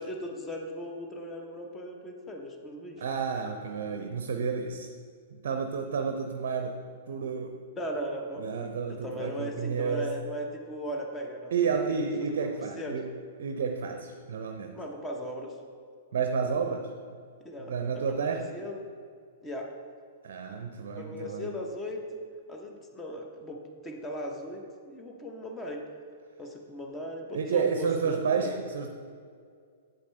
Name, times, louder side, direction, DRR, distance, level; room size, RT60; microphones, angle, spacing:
voice 1, 0.0-3.0 7.8-8.4 8.9-11.5 12.2-13.0 14.7-15.6 17.4-17.7 18.1-18.8 19.4-19.7 20.9-22.2 22.5-25.8 26.4-28.5, equal, 15° left, 2 dB, 0.9 m, -38 dB
voice 2, 3.0-4.9 5.3-7.5 8.4-10.1 11.5-13.1 13.4-14.8 16.1-16.9 17.7-18.5 20.2-21.5 27.3-28.9, right 6 dB, 60° right, 7 dB, 0.5 m, -31 dB
8.3 x 7.7 x 3.3 m, 2.2 s
figure-of-eight pair, 105°, 0 cm